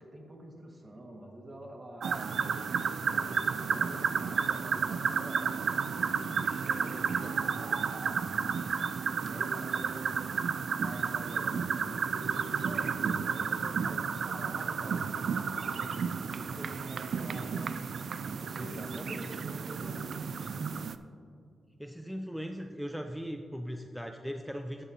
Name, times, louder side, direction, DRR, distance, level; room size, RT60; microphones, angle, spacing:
voice 1, 0.0-6.3 6.6-8.8 9.2-10.2 10.6-17.6 18.0-20.2, right 1 dB, 35° right, 0 dB, 1.8 m, -47 dB
sound 1, 2.0-21.0, right 6 dB, 70° right, 0.3 m, -32 dB
voice 2, 18.6-19.4 21.8-24.8, equal, ahead, 5 dB, 0.5 m, -39 dB
13.0 x 8.3 x 2.9 m, 2.5 s
cardioid pair, 75°, 0 cm